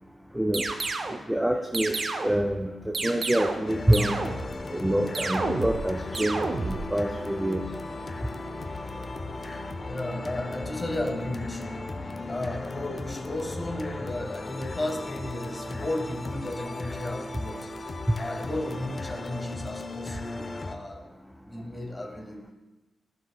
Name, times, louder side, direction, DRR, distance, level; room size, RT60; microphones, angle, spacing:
voice 1, 0.4-0.7 1.3-2.0 2.2-4.2 4.7-7.6, right 1 dB, 5° right, 3 dB, 0.5 m, -26 dB
sound 1, 0.5-1.2 1.7-2.5 2.9-3.7 3.9-4.6 5.1-5.9 6.1-6.8, right 3 dB, 45° right, 0.7 m, -30 dB
sound 2, 3.7-20.8, left 2 dB, 35° left, 0.7 m, -37 dB
voice 2, 9.9-11.8 12.3-17.7 18.2-21.1 21.4-22.5, left 1 dB, 15° left, -1 dB, 1.5 m, -34 dB
14.0 x 6.0 x 2.3 m, 1.1 s
cardioid pair, 110°, 0 cm